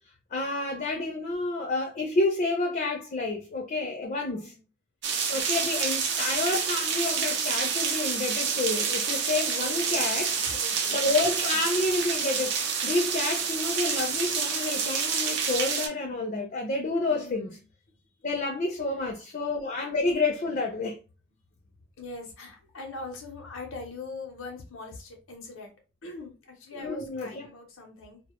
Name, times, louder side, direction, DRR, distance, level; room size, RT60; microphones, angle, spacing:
voice 1, 0.3-4.5 5.3-10.3 10.9-17.6 18.2-21.0 26.8-27.5, left 2 dB, 40° left, 0.4 m, -29 dB
voice 2, 4.2-4.6 9.5-11.0 17.1-17.6 17.9-18.0 18.9-19.1 22.0-25.7 26.0-28.2, left 3 dB, 90° left, 0.6 m, -42 dB
sound 1, 5.0-15.9, right 6 dB, 55° right, 0.4 m, -28 dB
2.1 x 2.0 x 2.9 m
head